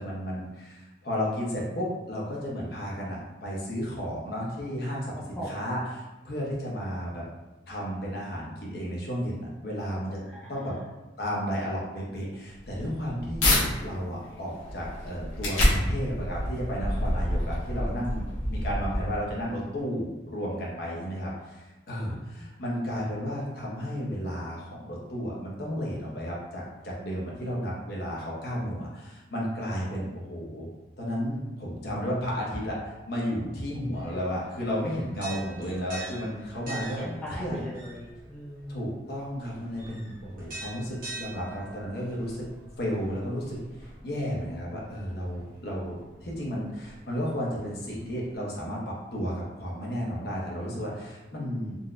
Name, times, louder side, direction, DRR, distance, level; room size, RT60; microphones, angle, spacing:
voice 1, 0.0-7.2 7.7-10.2 10.5-10.7 11.2-30.7 31.0-37.0 37.4-37.7 38.7-42.5 42.8-43.6 44.0-51.8, equal, 55° left, -4 dB, 0.7 m, -33 dB
voice 2, 10.2-10.9 22.1-22.5 35.7-35.9 36.9-39.0, left 1 dB, 5° left, -8 dB, 0.4 m, -40 dB
sound 1, 12.6-13.6 14.2-19.4, left 1 dB, 85° left, 0.9 m, -28 dB
sound 2, 33.9-48.4, right 2 dB, 45° right, 0.9 m, -46 dB
3.9 x 2.1 x 2.4 m, 1.1 s
head